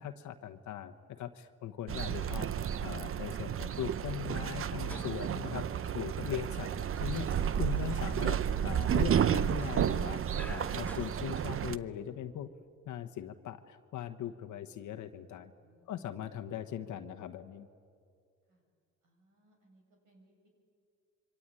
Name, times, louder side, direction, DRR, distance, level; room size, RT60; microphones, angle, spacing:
voice 1, 0.0-2.5 2.8-5.6 5.9-6.7 7.0-12.5 12.9-15.5 15.9-17.7, left 10 dB, 75° left, 6 dB, 1.2 m, -40 dB
sound 1, 1.9-11.8, right 9 dB, 45° right, 0.7 m, -32 dB
sound 2, 4.7-11.9, left 1 dB, 5° left, 1.1 m, -53 dB
voice 2, 15.6-16.4 18.5-18.6 19.0-20.5, right 1 dB, 85° right, 2 dB, 7.4 m, -67 dB
26.0 x 23.5 x 9.1 m, 2.3 s
cardioid pair, 90°, 30 cm